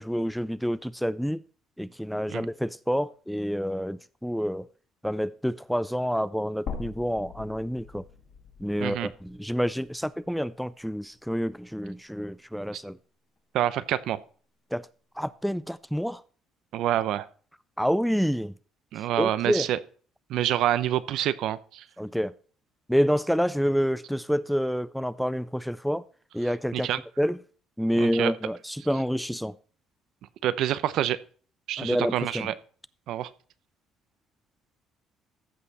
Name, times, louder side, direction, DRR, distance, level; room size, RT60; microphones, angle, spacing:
voice 1, 0.0-1.4 1.8-4.7 5.0-8.0 8.6-13.0 14.7-14.9 15.2-16.2 17.8-18.5 19.2-19.7 22.0-22.3 22.9-26.0 26.3-26.9 27.2-27.4 27.8-29.5 31.8-32.5, equal, ahead, 0.3 m, -28 dB
sound 1, 6.7-10.8 11.2-11.3 12.7-12.8, left 5 dB, 50° left, 2.2 m, -42 dB
voice 2, 13.5-14.2 16.7-17.3 18.9-19.8 20.3-21.8 26.7-27.0 28.0-28.3 30.4-31.2 31.7-32.5 33.1-33.3, right 12 dB, 70° right, 0.7 m, -27 dB
14.5 x 5.6 x 4.1 m
cardioid pair, 135°, 0 cm